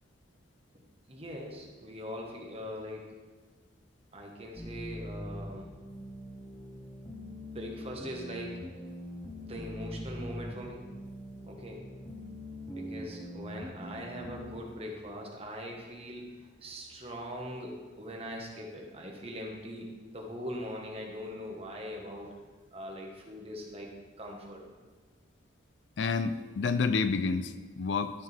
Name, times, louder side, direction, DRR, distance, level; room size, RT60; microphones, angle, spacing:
voice 1, 1.1-3.2 4.1-5.7 7.5-8.6 9.4-10.9 11.4-11.8 12.7-16.3 16.6-22.3 22.7-23.9 24.2-24.6, equal, 30° right, 0 dB, 1.4 m, -41 dB
sound 1, 4.6-14.6, left 1 dB, 15° left, 0.9 m, -43 dB
voice 2, 26.0-28.1, left 4 dB, 65° left, 11 dB, 0.4 m, -29 dB
12.5 x 6.7 x 3.5 m, 1.3 s
head